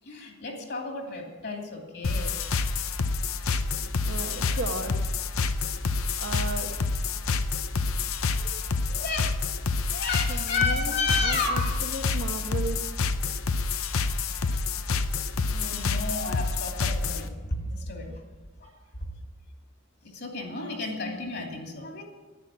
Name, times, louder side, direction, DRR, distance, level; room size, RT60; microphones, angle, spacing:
voice 1, 0.0-2.4 4.5-4.6 8.4-8.6 8.9-9.4 9.9-11.8 14.3-14.6 15.5-18.1 20.0-22.0, left 3 dB, 55° left, 1 dB, 2.6 m, -32 dB
sound 1, 2.0-17.3, left 4 dB, 85° left, 0.7 m, -28 dB
voice 2, 3.8-5.0 6.2-6.7 10.3-12.8 18.1-18.2 18.7-18.8, right 2 dB, 65° right, 4 dB, 1.3 m, -35 dB
10.5 x 9.8 x 8.4 m, 1.3 s
head